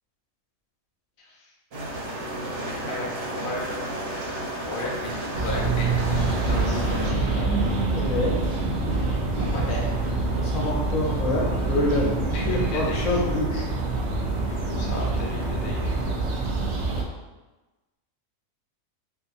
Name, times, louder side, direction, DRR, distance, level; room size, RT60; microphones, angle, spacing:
sound 1, 1.7-7.1, right 1 dB, 55° right, 1.0 m, -32 dB
voice 1, 2.9-3.6 4.6-7.6 9.4-9.9 12.3-13.0 14.5-16.0, left 1 dB, 50° left, -3 dB, 0.7 m, -35 dB
sound 2, 5.3-17.0, right 3 dB, 80° right, 0.4 m, -26 dB
voice 2, 7.9-8.5 10.4-13.7, left 2 dB, 75° left, -3 dB, 1.1 m, -26 dB
3.7 x 2.8 x 2.5 m, 1.1 s
omnidirectional pair, 1.4 m